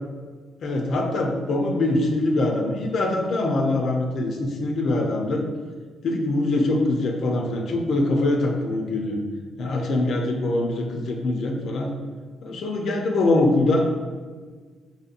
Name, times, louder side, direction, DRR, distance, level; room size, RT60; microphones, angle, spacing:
voice 1, 0.6-5.4 6.0-9.2 9.6-11.9 12.4-13.9, left 2 dB, 65° left, 2 dB, 0.5 m, -23 dB
4.3 x 2.8 x 2.5 m, 1.5 s
cardioid pair, 90°, 0 cm